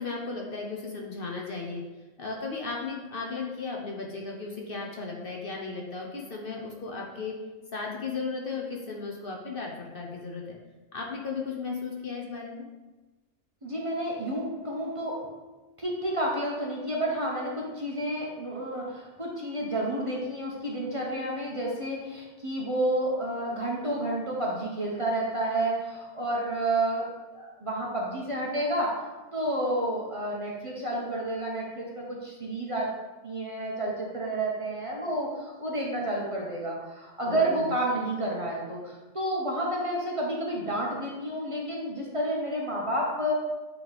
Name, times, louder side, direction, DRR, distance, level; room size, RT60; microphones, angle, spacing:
voice 1, 0.0-1.8 2.2-7.3 7.7-10.6 10.9-12.6 37.3-37.7, left 4 dB, 55° left, -1 dB, 0.9 m, -35 dB
voice 2, 13.6-15.2 15.8-27.1 27.3-29.0 29.3-32.9 33.2-43.3, right 1 dB, 30° right, -3 dB, 1.0 m, -30 dB
7.8 x 3.2 x 4.1 m, 1.2 s
omnidirectional pair, 1.3 m